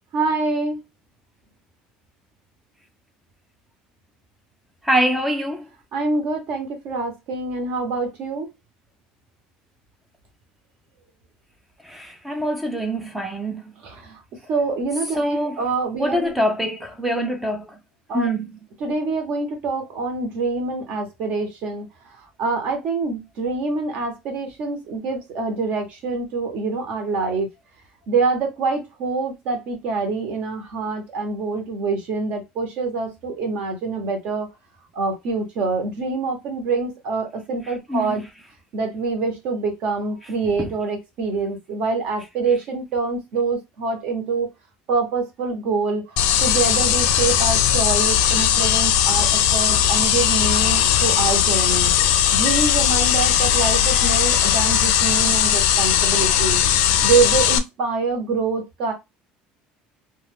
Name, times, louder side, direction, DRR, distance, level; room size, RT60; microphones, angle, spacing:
voice 1, 0.1-0.8 5.9-8.5 13.8-14.2 14.5-16.3 18.1-18.3 18.8-21.9 22.1-27.5 28.1-34.5 34.9-38.2 38.7-44.5 44.9-51.9 52.3-56.6 57.0-58.9, right 4 dB, 55° right, 0.9 m, -25 dB
voice 2, 4.8-5.7 11.8-13.7 15.2-15.6 16.0-17.8 18.1-18.5 37.7-38.2 40.6-40.7, equal, 5° right, 0.3 m, -24 dB
sound 1, 46.2-57.6, left 9 dB, 70° left, 0.4 m, -18 dB
2.3 x 2.3 x 3.3 m
cardioid pair, 165°, 3 cm